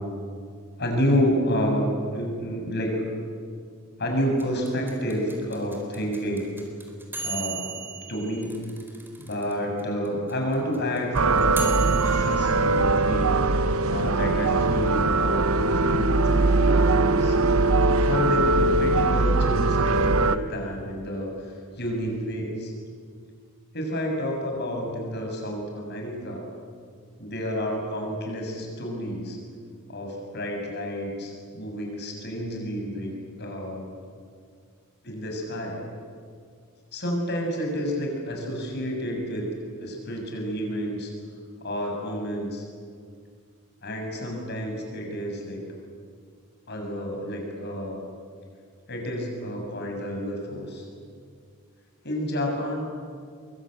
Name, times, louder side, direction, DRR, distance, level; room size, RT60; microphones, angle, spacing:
voice 1, 0.8-3.1 4.0-6.5 7.2-7.7 8.1-8.6 9.2-17.4 18.0-22.7 23.7-26.5 27.2-29.4 29.9-33.9 35.0-35.8 36.9-39.5 39.8-41.1 41.6-42.6 43.8-45.6 46.7-48.0 48.9-50.8 52.0-52.8, equal, 50° left, 1 dB, 7.0 m, -30 dB
sound 1, 4.4-9.5 9.8-9.9 10.0-12.4, right 4 dB, 10° right, 4.4 m, -36 dB
sound 2, 11.1-20.4, right 3 dB, 70° right, 1.0 m, -21 dB
24.5 x 23.5 x 9.0 m, 2.1 s
head